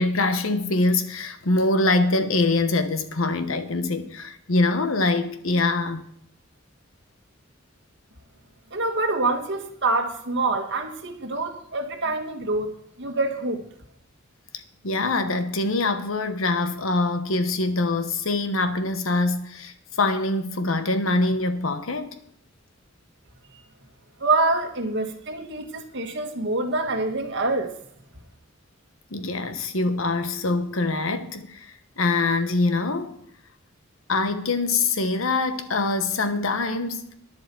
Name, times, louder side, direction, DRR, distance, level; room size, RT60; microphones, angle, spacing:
voice 1, 0.0-6.1 14.8-22.2 29.1-33.2 34.1-37.1, left 2 dB, 70° left, 1.1 m, -24 dB
voice 2, 8.7-12.7 13.0-13.6 24.2-27.7, right 2 dB, 60° right, 1.8 m, -26 dB
10.5 x 7.7 x 6.9 m
head